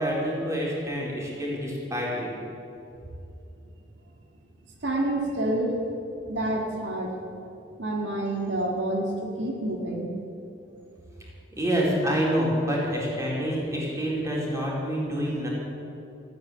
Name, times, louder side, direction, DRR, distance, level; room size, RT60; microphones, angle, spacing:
voice 1, 0.0-2.3 11.5-15.5, equal, 15° right, -4 dB, 4.2 m, -27 dB
voice 2, 4.8-5.8 6.3-7.1 7.8-10.1, right 1 dB, 75° right, 0 dB, 2.0 m, -28 dB
15.5 x 9.5 x 9.8 m, 2.8 s
head